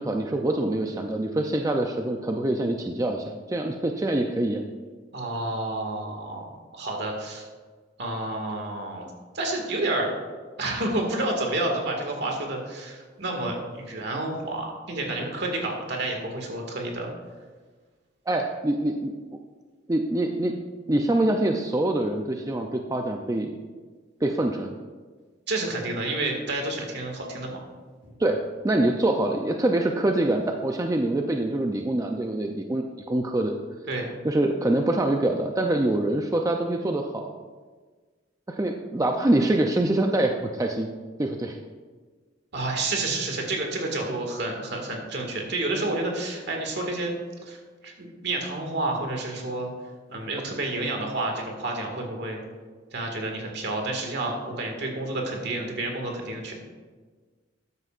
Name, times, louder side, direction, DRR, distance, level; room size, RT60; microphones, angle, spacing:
voice 1, 0.0-4.6 18.3-19.1 19.9-20.6 20.9-23.5 24.2-24.7 28.2-33.5 34.2-37.3 38.5-40.9 41.2-41.6, right 1 dB, 20° right, 3 dB, 0.5 m, -25 dB
voice 2, 5.1-6.5 6.7-7.5 8.0-9.1 9.3-10.1 10.6-17.1 25.5-27.6 28.0-28.1 33.9-34.1 42.5-47.1 47.4-47.6 47.8-49.7 50.1-52.4 52.9-56.5, right 2 dB, 60° right, 1 dB, 1.9 m, -29 dB
13.0 x 9.5 x 2.5 m, 1.4 s
head